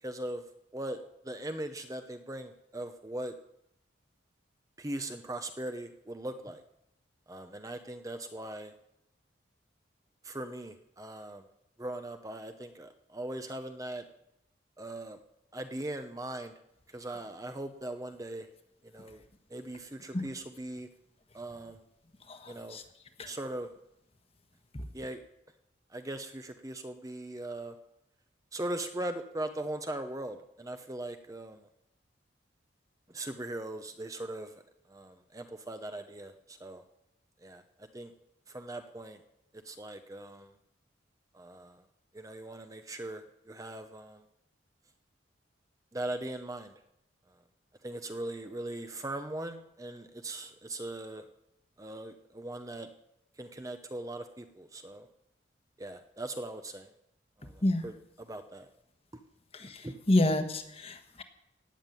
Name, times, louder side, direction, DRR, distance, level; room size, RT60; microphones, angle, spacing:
voice 1, 0.0-0.4 0.7-3.3 4.8-6.6 7.3-8.7 10.2-11.4 11.8-14.0 14.8-15.2 15.5-16.5 16.9-18.5 18.8-19.2 19.5-20.9 21.3-21.8 22.5-22.8 23.3-23.7 24.9-25.2 25.9-27.7 28.5-31.7 33.1-34.6 34.9-36.8 37.4-38.1 38.5-39.2 39.6-40.6 41.3-41.8 42.1-44.2 45.9-46.7 47.8-51.3 51.8-52.9 53.4-55.1 55.8-56.9 57.4-58.7 59.1-59.2 59.8-60.0, right 1 dB, 20° right, 7 dB, 0.7 m, -40 dB
voice 2, 22.3-22.8 23.2-23.3 24.7-24.8 57.6-57.8 59.5-61.2, left 1 dB, 30° left, 8 dB, 1.3 m, -29 dB
17.5 x 7.4 x 9.0 m, 0.83 s
head